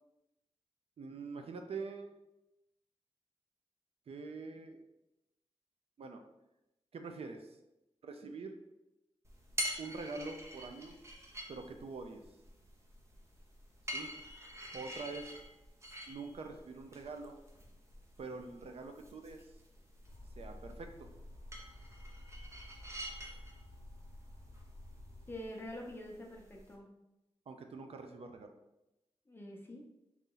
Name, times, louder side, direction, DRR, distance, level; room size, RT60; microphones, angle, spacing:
voice 1, 1.0-2.1 4.1-4.8 6.0-6.2 6.9-7.6 8.0-8.6 9.8-11.0 11.5-12.2 13.9-14.1 14.7-15.3 16.1-17.4 18.2-19.5 20.4-21.1 27.5-28.5, right 4 dB, 65° right, 5 dB, 0.5 m, -45 dB
sound 1, 9.2-26.7, equal, 25° right, 0.7 m, -47 dB
sound 2, 20.0-25.4, left 1 dB, 60° left, 0.9 m, -52 dB
voice 2, 25.3-26.9 29.3-29.9, left 1 dB, 20° left, 0 dB, 0.7 m, -46 dB
4.1 x 3.0 x 3.8 m, 0.92 s
wide cardioid pair, 170°, 11 cm